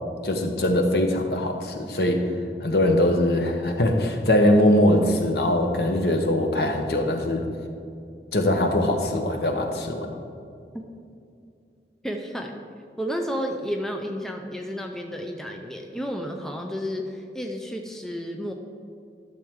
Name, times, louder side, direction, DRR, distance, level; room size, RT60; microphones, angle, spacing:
voice 1, 0.2-2.2 2.6-7.4 8.3-10.1, left 1 dB, 65° left, 4 dB, 1.0 m, -22 dB
voice 2, 12.0-12.5 13.0-18.5, equal, 5° left, 3 dB, 0.5 m, -31 dB
12.0 x 6.6 x 3.6 m, 2.5 s
head